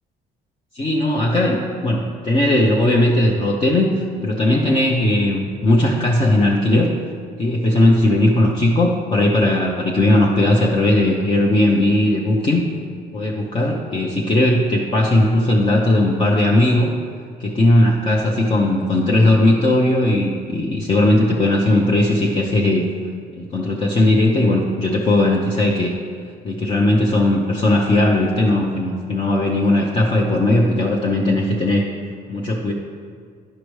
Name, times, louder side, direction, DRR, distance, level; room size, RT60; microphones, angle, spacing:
voice 1, 0.7-6.9 7.4-12.7 13.1-16.9 17.4-22.9 23.3-25.9 26.4-31.9 32.3-32.7, left 1 dB, 30° left, -2 dB, 0.8 m, -17 dB
11.5 x 4.9 x 3.2 m, 2.1 s
cardioid pair, 110°, 17 cm